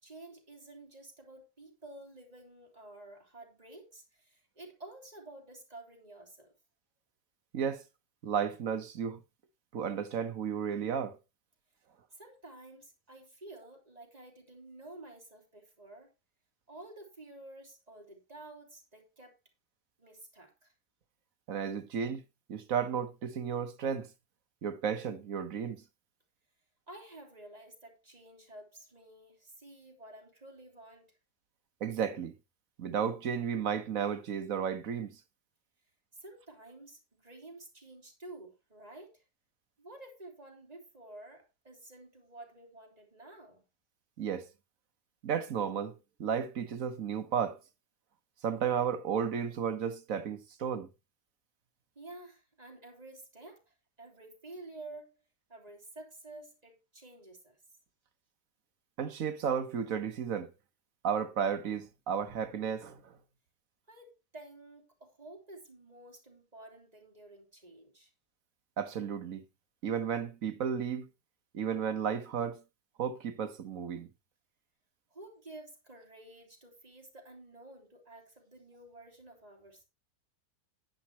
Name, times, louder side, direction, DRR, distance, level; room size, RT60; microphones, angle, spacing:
voice 1, 0.0-6.5 12.1-16.1 16.7-19.4 20.0-20.7 26.9-31.1 36.2-39.2 39.8-43.6 51.9-55.2 55.5-57.6 63.9-68.1 75.1-79.9, right 2 dB, 20° right, 3.0 m, -51 dB
voice 2, 8.2-9.2 9.7-11.2 21.5-22.2 22.5-24.1 24.6-25.8 31.8-32.3 32.8-35.2 44.2-44.5 45.2-47.6 48.4-50.9 59.0-60.5 61.0-63.2 68.8-69.4 69.8-71.1 71.5-72.6 73.0-74.1, right 7 dB, 55° right, 1.4 m, -33 dB
10.5 x 10.5 x 3.0 m
omnidirectional pair, 1.8 m